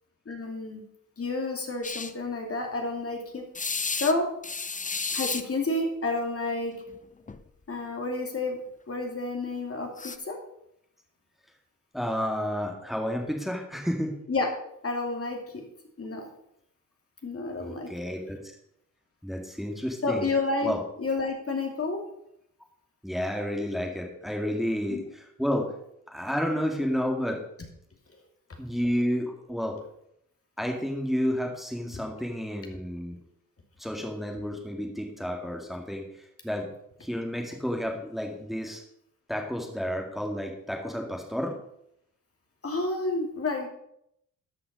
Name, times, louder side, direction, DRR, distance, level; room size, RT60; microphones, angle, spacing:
voice 1, 0.3-0.8 1.2-3.5 3.9-4.3 5.1-6.7 7.7-8.6 8.9-10.4 14.3-14.5 14.8-15.6 16.0-16.3 17.2-17.9 20.0-20.7 21.0-22.0 24.9-25.0 42.6-43.7, left 2 dB, 40° left, 2 dB, 2.5 m, -30 dB
sound 1, 1.8-2.1 3.6-4.1 4.4-5.4 6.8-7.0 7.3-7.4 10.0-10.2, left 4 dB, 25° left, 0.7 m, -32 dB
voice 2, 11.9-14.2 17.6-18.6 19.2-20.3 20.6-20.8 23.0-25.7 26.1-27.4 28.6-29.8 30.6-33.2 33.8-36.0 36.4-36.7 37.0-38.8 39.3-41.6, equal, ahead, 1 dB, 2.1 m, -31 dB
13.0 x 5.8 x 5.4 m, 0.75 s
cardioid pair, 65°, 34 cm